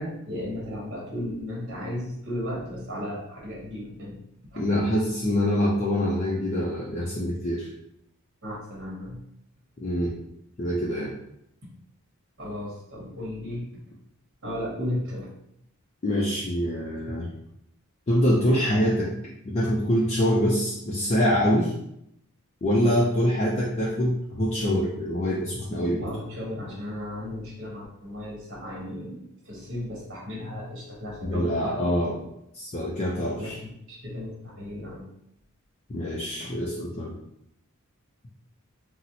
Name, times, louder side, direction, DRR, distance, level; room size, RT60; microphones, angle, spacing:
voice 1, 0.0-4.2 4.5-4.6 8.4-9.2 12.4-13.6 14.4-15.3 25.9-29.2 29.5-32.2 33.4-35.0, left 1 dB, 55° right, -3 dB, 1.1 m, -35 dB
voice 2, 4.6-7.7 9.8-10.1 10.6-11.1 16.0-17.3 18.1-19.1 19.5-21.7 22.6-26.1 31.2-32.1 32.5-33.6 35.9-37.2, equal, 30° left, -5 dB, 0.4 m, -25 dB
4.0 x 2.0 x 2.7 m, 0.78 s
head